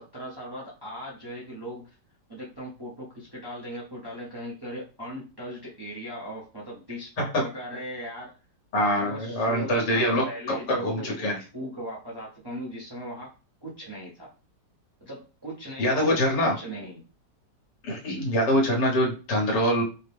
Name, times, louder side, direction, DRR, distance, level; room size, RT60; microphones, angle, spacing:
voice 1, 0.0-2.0 2.3-8.4 9.0-13.3 13.6-14.3 15.0-17.0, equal, 25° right, -5 dB, 0.5 m, -38 dB
voice 2, 8.7-11.4 15.8-16.6 17.8-19.8, equal, 70° left, -1 dB, 1.7 m, -24 dB
5.0 x 2.1 x 3.4 m, 0.33 s
omnidirectional pair, 1.9 m